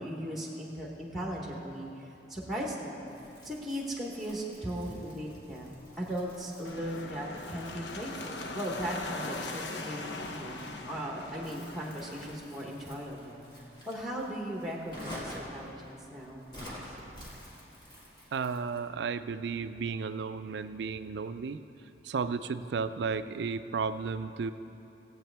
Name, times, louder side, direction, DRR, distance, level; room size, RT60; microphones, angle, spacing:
voice 1, 0.0-3.0 3.4-5.7 6.0-10.6 10.9-13.4 13.9-16.5, equal, ahead, -2 dB, 1.0 m, -37 dB
Crumpling crinkling, 3.1-18.9, equal, 25° left, 1.8 m, -50 dB
sound 1, 6.6-12.4, left 2 dB, 80° left, 0.7 m, -40 dB
voice 2, 18.3-21.6 22.0-24.5, right 5 dB, 75° right, 12 dB, 0.4 m, -33 dB
18.0 x 8.0 x 3.4 m, 2.8 s
head